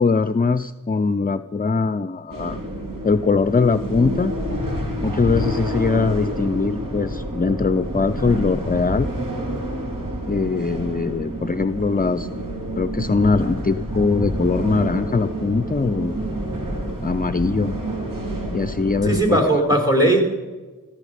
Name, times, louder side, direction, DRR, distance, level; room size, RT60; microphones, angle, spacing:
voice 1, 0.0-2.6 3.0-4.3 5.0-9.1 10.3-12.3 12.8-16.1 17.0-17.8 18.5-19.6, left 4 dB, 25° left, 12 dB, 0.5 m, -21 dB
sound 1, 2.3-19.2, equal, 80° right, 3.1 m, -28 dB
voice 2, 19.0-20.2, right 1 dB, 10° right, 3 dB, 4.6 m, -18 dB
16.5 x 14.0 x 5.0 m, 1.3 s
cardioid pair, 45°, 32 cm